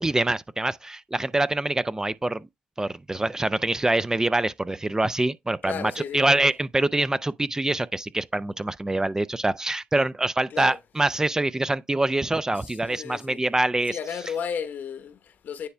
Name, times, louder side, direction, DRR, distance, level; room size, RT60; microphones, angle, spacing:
voice 1, 0.0-2.4 2.8-14.0, right 2 dB, 20° right, 0.5 m, -25 dB
voice 2, 5.6-6.5 10.5-10.8 12.6-13.4 13.9-15.7, left 7 dB, 65° left, 1.1 m, -34 dB
9.5 x 3.3 x 3.3 m
supercardioid pair, 55°, 3 cm